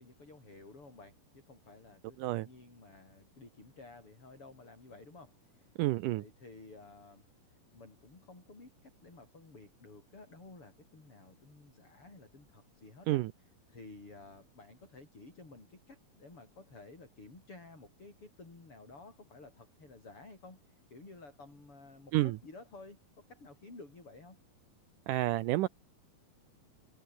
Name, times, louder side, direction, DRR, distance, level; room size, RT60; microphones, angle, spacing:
voice 1, 0.0-5.7 6.1-13.2 13.7-23.0 23.3-24.4, left 3 dB, 40° left, 8.8 m, -53 dB
voice 2, 5.8-6.2 13.1-13.3 22.1-22.4 25.1-25.7, right 17 dB, 75° right, 2.2 m, -29 dB
omnidirectional pair, 3.9 m